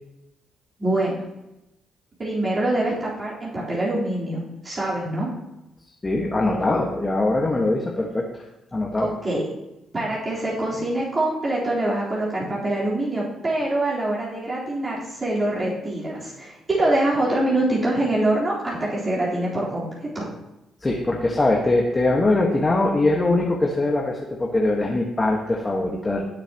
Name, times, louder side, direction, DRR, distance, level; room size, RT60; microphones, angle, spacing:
voice 1, 0.8-1.1 2.2-4.4 4.6-5.3 9.0-9.4 9.9-19.8 20.1-20.3, right 1 dB, 30° right, -8 dB, 3.9 m, -24 dB
voice 2, 6.0-8.2 8.7-9.1 20.8-26.2, left 2 dB, 20° left, -1 dB, 1.5 m, -22 dB
18.0 x 7.0 x 3.0 m, 0.94 s
cardioid pair, 90°, 0 cm